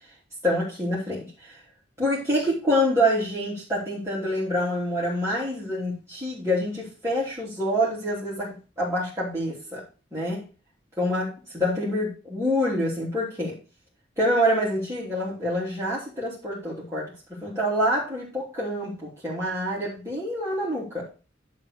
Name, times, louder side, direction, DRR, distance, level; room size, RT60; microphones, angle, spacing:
voice 1, 0.4-1.6 2.0-9.8 10.1-10.4 11.0-13.6 14.2-17.1 17.4-21.0, equal, 15° right, -7 dB, 3.1 m, -26 dB
11.5 x 3.8 x 6.6 m, 0.33 s
head